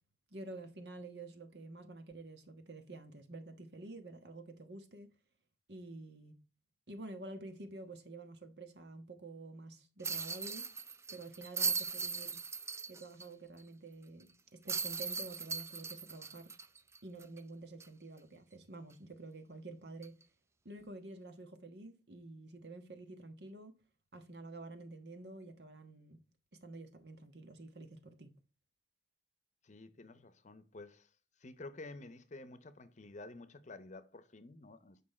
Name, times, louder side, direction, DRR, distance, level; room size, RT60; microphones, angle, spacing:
voice 1, 0.3-5.1 5.7-6.3 6.9-10.6 11.1-12.4 12.9-16.5 17.0-20.2 20.6-23.7 24.1-26.2 26.5-28.3, right 2 dB, 70° right, 1.4 m, -49 dB
sound 1, 10.0-13.3 13.6-13.7 14.7-17.4 17.8-17.9 20.0-20.2, right 5 dB, 15° right, 0.4 m, -38 dB
voice 2, 29.6-31.1 31.4-35.0, left 2 dB, 45° left, 0.7 m, -51 dB
8.7 x 5.3 x 4.3 m
head